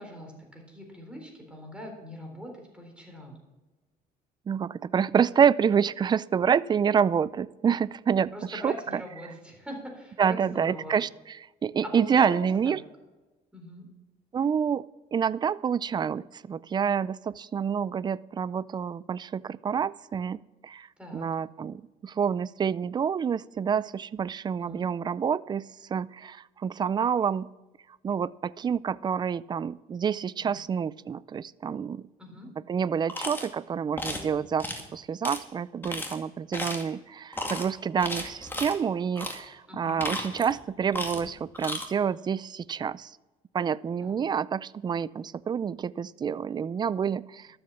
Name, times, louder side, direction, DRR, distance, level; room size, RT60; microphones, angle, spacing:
voice 1, 0.0-3.4 8.3-10.9 11.8-12.7 13.5-13.9 21.0-21.3 24.6-24.9 30.4-30.6 32.2-32.5 39.7-40.0 44.0-44.2, equal, 5° right, 1 dB, 3.9 m, -42 dB
voice 2, 4.5-9.0 10.2-11.4 11.6-12.8 14.3-14.8 15.1-20.9 21.1-27.5 28.0-32.1 32.7-43.1 43.5-47.5, right 7 dB, 25° right, 19 dB, 0.3 m, -28 dB
sound 1, 33.1-33.5 34.0-34.3 34.6-34.8 35.2-35.4 35.8-36.1 36.5-36.9 37.3-37.6 38.0-38.7 39.2-39.4 39.8-40.6 40.9-41.3 41.5-41.9, left 1 dB, 10° left, 2.2 m, -34 dB
12.5 x 7.7 x 7.0 m, 1.1 s
cardioid pair, 110°, 17 cm